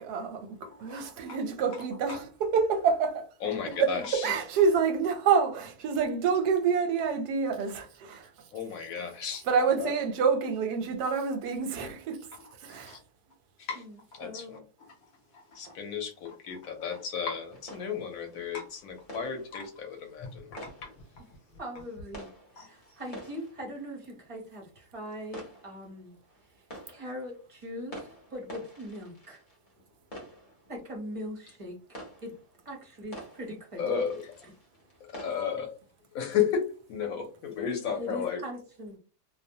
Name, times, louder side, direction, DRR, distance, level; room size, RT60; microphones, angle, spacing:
voice 1, 0.0-3.3 3.8-8.5 9.4-13.0, right 5 dB, 90° right, 1.2 m, -27 dB
voice 2, 3.4-4.2 8.5-9.4 9.8-9.9 12.9-13.0 13.6-13.8 14.1-14.9 15.3-20.9 22.6-22.7 33.8-34.5 35.1-35.7 36.1-38.4, left 7 dB, 70° left, 1.0 m, -33 dB
voice 3, 13.7-14.6 21.6-26.1 26.9-29.4 30.7-32.3 32.6-33.8 38.0-39.0, equal, 40° right, 0.5 m, -41 dB
sound 1, 17.5-35.6, equal, 35° left, 0.6 m, -49 dB
sound 2, 20.2-22.4, left 2 dB, 90° left, 1.2 m, -48 dB
2.7 x 2.0 x 2.6 m
omnidirectional pair, 1.7 m